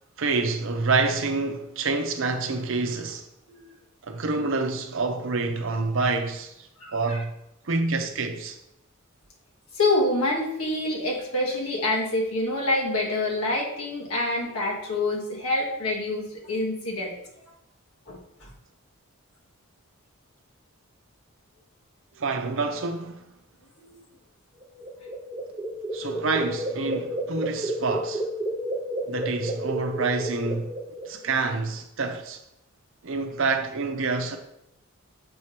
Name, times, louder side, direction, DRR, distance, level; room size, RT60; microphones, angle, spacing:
voice 1, 0.2-3.2 4.0-6.5 6.9-7.3 7.7-8.6 22.2-23.3 25.9-28.3 29.1-30.7 31.1-32.4 33.0-34.4, right 3 dB, 65° right, 0.7 m, -27 dB
voice 2, 6.8-7.2 9.7-17.1 17.4-17.5 18.1-18.5 23.8-24.0, left 2 dB, 85° left, 1.4 m, -27 dB
sound 1, 24.6-31.3, right 1 dB, 25° right, 1.0 m, -31 dB
6.9 x 4.9 x 2.9 m
head